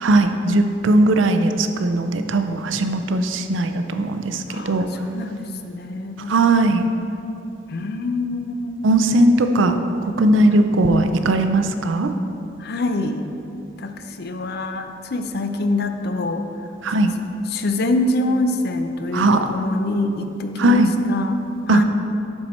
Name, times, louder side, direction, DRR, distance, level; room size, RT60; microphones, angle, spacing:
voice 1, 0.0-4.9 6.3-6.9 8.8-9.7 10.0-12.1 16.8-17.1 19.1-19.4 20.6-20.9 21.7-21.8, right 2 dB, 85° right, 7 dB, 0.5 m, -18 dB
voice 2, 4.5-6.5 7.7-8.7 12.6-13.3 13.8-16.4 17.5-21.8, left 2 dB, 55° left, 7 dB, 0.5 m, -25 dB
12.0 x 4.4 x 4.3 m, 2.8 s
head